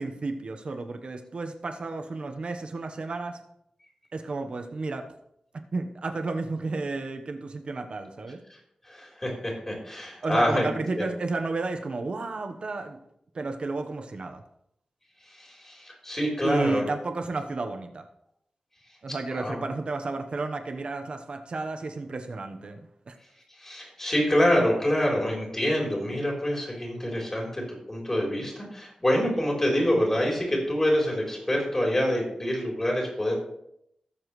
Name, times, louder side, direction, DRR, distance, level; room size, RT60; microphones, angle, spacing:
voice 1, 0.0-3.4 4.1-5.1 5.7-8.4 10.2-13.0 13.3-14.4 16.4-18.0 19.0-22.8 23.1-23.2, right 3 dB, 55° right, 5 dB, 1.1 m, -32 dB
voice 2, 8.8-10.7 11.0-11.1 15.3-16.8 19.3-19.6 23.6-33.3, equal, 20° left, -2 dB, 3.8 m, -26 dB
18.5 x 7.2 x 3.2 m, 0.77 s
wide cardioid pair, 120°, 2 cm